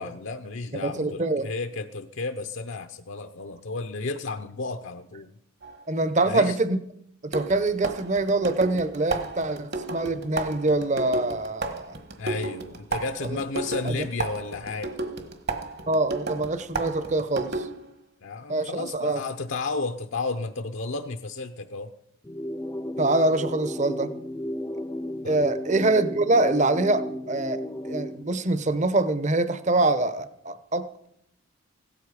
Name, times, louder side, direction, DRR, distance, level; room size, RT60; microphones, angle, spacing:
voice 1, 0.0-5.3 6.3-6.6 12.2-14.9 18.2-21.9 25.2-25.5, left 3 dB, 60° left, 8 dB, 0.7 m, -32 dB
voice 2, 0.7-1.5 5.9-6.8 7.2-12.0 13.2-13.4 13.8-14.1 15.9-17.7 18.5-19.2 23.0-24.1 25.2-31.1, right 2 dB, 35° right, 12 dB, 0.8 m, -25 dB
sound 1, 5.6-5.8 7.3-17.9, right 3 dB, 50° right, 1.4 m, -33 dB
sound 2, 22.2-28.2, equal, 15° left, 0.6 m, -34 dB
16.5 x 13.0 x 4.9 m, 0.74 s
head